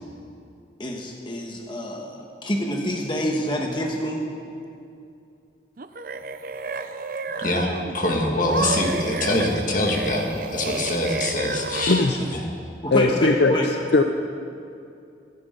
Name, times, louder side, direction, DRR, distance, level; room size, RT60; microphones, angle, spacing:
voice 1, 0.8-4.2 12.8-13.7, equal, 25° left, 0 dB, 1.3 m, -27 dB
sound 1, 5.8-8.0 8.5-12.4, right 4 dB, 50° right, 0.5 m, -31 dB
voice 2, 7.4-12.0 12.3-12.4, left 1 dB, 45° left, 0 dB, 2.0 m, -24 dB
voice 3, 11.9-12.2 12.9-13.5 13.9-14.0, left 3 dB, 65° left, 5 dB, 0.6 m, -18 dB
25.5 x 11.0 x 3.9 m, 2.5 s
head